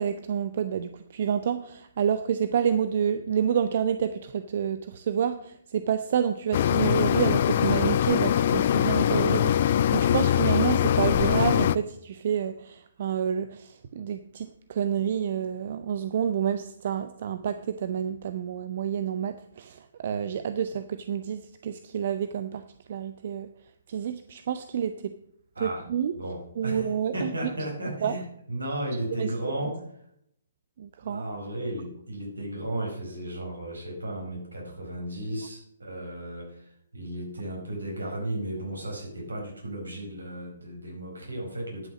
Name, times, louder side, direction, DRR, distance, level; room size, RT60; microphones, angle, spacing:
voice 1, 0.0-23.5 23.9-25.1 25.6-27.5 28.0-28.2 29.2-29.3 30.8-31.2, right 8 dB, 50° right, 11 dB, 0.5 m, -29 dB
sound 1, 6.5-11.8, left 10 dB, 45° left, 0.4 m, -22 dB
voice 2, 25.5-25.9 26.1-29.8 31.0-41.9, right 1 dB, 75° right, 0 dB, 4.6 m, -34 dB
11.0 x 6.2 x 6.2 m, 0.72 s
figure-of-eight pair, 130°, 0 cm